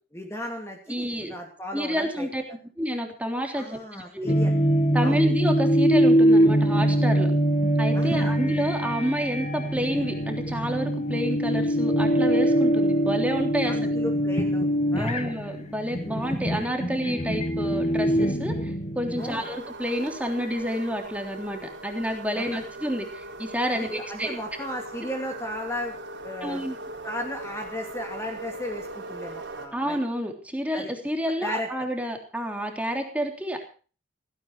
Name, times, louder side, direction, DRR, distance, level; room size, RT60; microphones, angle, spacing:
voice 1, 0.1-2.3 3.5-4.6 5.0-5.2 7.9-8.3 13.7-15.2 19.2-19.5 22.3-22.7 23.7-26.6 27.0-30.0 30.7-30.9 31.4-31.9, left 1 dB, 15° left, 2 dB, 2.7 m, -35 dB
voice 2, 0.9-1.3 1.7-2.4 2.8-4.3 4.9-7.3 7.8-13.9 15.0-24.3 26.4-26.8 29.7-33.6, equal, 5° right, 3 dB, 3.3 m, -29 dB
sound 1, 4.3-19.4, equal, 35° left, 1.8 m, -23 dB
sound 2, 19.2-29.7, right 2 dB, 65° right, 4.1 m, -40 dB
17.0 x 16.5 x 4.6 m, 0.39 s
head